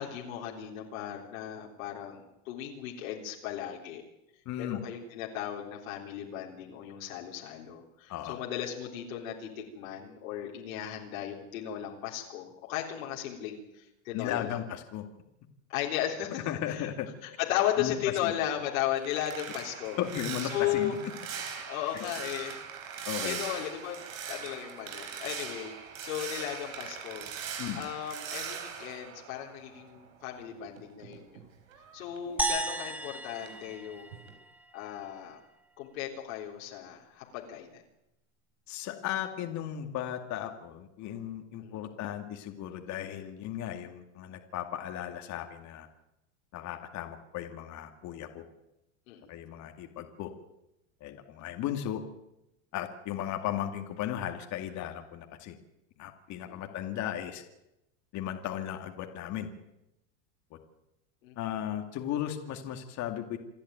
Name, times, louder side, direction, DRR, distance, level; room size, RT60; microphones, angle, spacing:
voice 1, 0.0-4.0 4.6-14.6 15.7-16.4 16.7-16.9 17.2-20.0 20.5-21.0 21.7-22.6 23.2-25.7 26.0-27.3 27.8-31.4 31.9-34.2 34.7-35.4 35.8-37.8 41.6-41.8 49.1-49.3 56.4-56.7 61.2-61.4, left 11 dB, 85° left, -2 dB, 3.7 m, -36 dB
voice 2, 4.5-4.8 8.1-8.4 14.1-15.0 16.5-17.1 17.8-18.0 18.2-18.3 20.0-21.0 21.6-21.7 21.9-22.0 23.1-23.4 27.6-27.9 38.7-45.9 46.5-48.4 49.3-50.3 51.0-52.0 52.7-55.6 56.0-57.4 58.1-59.5 61.4-63.4, left 11 dB, 45° left, 5 dB, 2.3 m, -36 dB
sound 1, 18.4-30.1 30.4-33.1 33.4-33.7 34.1-34.4, right 7 dB, 90° right, 4.3 m, -41 dB
sound 2, 32.4-34.8, right 2 dB, 5° right, 1.3 m, -34 dB
27.5 x 10.5 x 9.4 m, 0.90 s
supercardioid pair, 130°, 39 cm